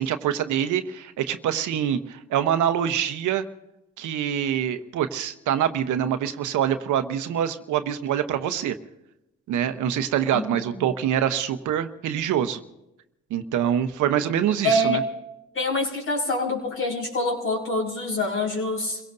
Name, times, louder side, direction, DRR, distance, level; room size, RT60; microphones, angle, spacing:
voice 1, 0.0-3.4 4.0-8.7 9.5-12.6 13.3-15.0, right 9 dB, 80° right, 9 dB, 1.0 m, -25 dB
voice 2, 10.3-10.8 14.6-15.0 15.5-19.0, left 1 dB, 45° left, -2 dB, 5.9 m, -25 dB
29.0 x 17.0 x 2.7 m, 0.93 s
cardioid pair, 90°, 30 cm